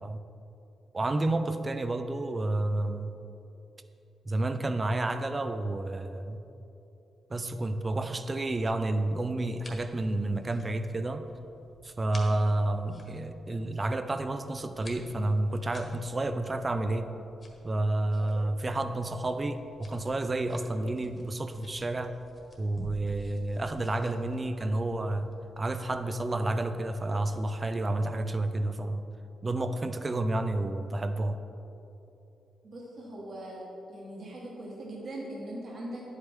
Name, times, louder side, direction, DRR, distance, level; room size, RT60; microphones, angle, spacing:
voice 1, 0.9-3.1 4.3-6.4 7.3-11.3 11.8-17.1 17.6-22.2 22.6-29.0 29.4-31.4, right 2 dB, 25° right, 10 dB, 0.4 m, -30 dB
sound 1, 7.8-27.5, left 1 dB, 25° left, 1.4 m, -53 dB
voice 2, 32.6-33.6 33.9-36.2, right 1 dB, 50° right, -4 dB, 1.7 m, -40 dB
10.0 x 8.0 x 3.7 m, 3.0 s
cardioid pair, 120°, 0 cm